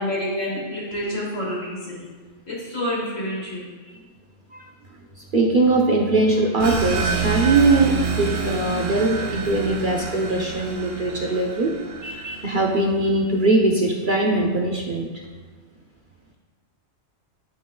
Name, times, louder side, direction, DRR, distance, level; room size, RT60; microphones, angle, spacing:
voice 1, 0.0-2.0 2.5-3.7, left 1 dB, 70° left, -6 dB, 3.2 m, -28 dB
voice 2, 5.3-11.7 12.0-15.1, right 2 dB, 45° right, 0 dB, 0.8 m, -21 dB
sound 1, 6.6-12.9, right 5 dB, 65° right, 1.5 m, -28 dB
9.7 x 9.3 x 2.3 m, 1.4 s
omnidirectional pair, 1.4 m